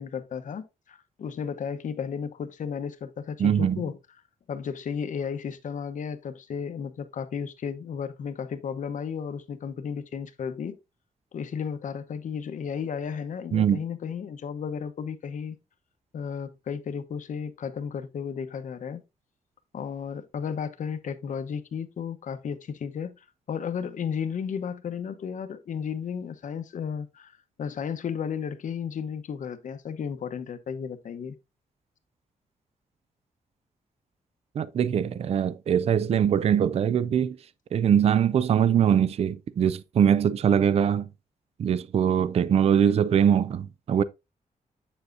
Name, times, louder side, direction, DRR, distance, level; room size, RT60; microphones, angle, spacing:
voice 1, 0.0-4.0 4.5-10.7 11.3-15.6 16.1-19.0 19.7-31.4, left 7 dB, 65° left, 0.9 m, -34 dB
voice 2, 3.4-3.8 13.5-13.8 34.6-37.4 37.7-41.1 41.6-44.0, right 8 dB, 45° right, 0.4 m, -22 dB
7.9 x 7.2 x 2.5 m
wide cardioid pair, 165°, 14 cm